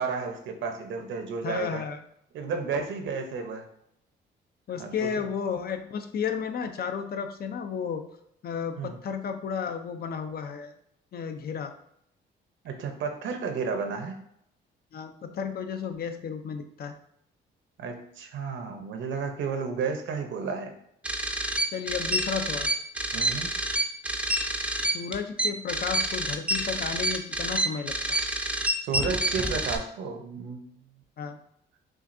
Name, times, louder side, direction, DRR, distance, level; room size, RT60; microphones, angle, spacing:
voice 1, 0.0-1.8 2.3-3.6 4.8-5.1 8.8-9.0 12.6-14.2 17.8-20.7 23.1-23.5 28.8-30.6, right 5 dB, 75° right, 5 dB, 0.8 m, -32 dB
voice 2, 1.4-2.0 4.7-8.0 8.4-10.7 11.1-11.7 14.9-17.0 21.7-22.7 24.8-28.3 31.2-31.4, left 6 dB, 50° left, 8 dB, 0.5 m, -33 dB
sound 1, 21.0-29.8, right 1 dB, 5° right, 0.4 m, -28 dB
6.1 x 2.4 x 2.6 m, 0.72 s
cardioid pair, 90°, 20 cm